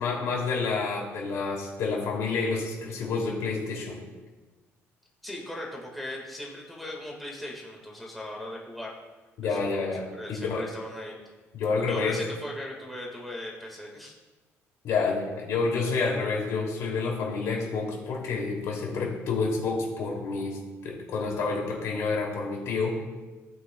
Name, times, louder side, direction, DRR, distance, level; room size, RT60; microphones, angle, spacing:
voice 1, 0.0-4.0 9.4-10.7 11.5-12.2 14.8-22.9, left 4 dB, 70° left, -1 dB, 2.6 m, -29 dB
voice 2, 5.2-8.9 9.5-9.9 10.2-11.2 11.9-14.1, left 1 dB, ahead, -3 dB, 1.6 m, -38 dB
17.0 x 8.9 x 2.2 m, 1.3 s
cardioid pair, 160°, 5 cm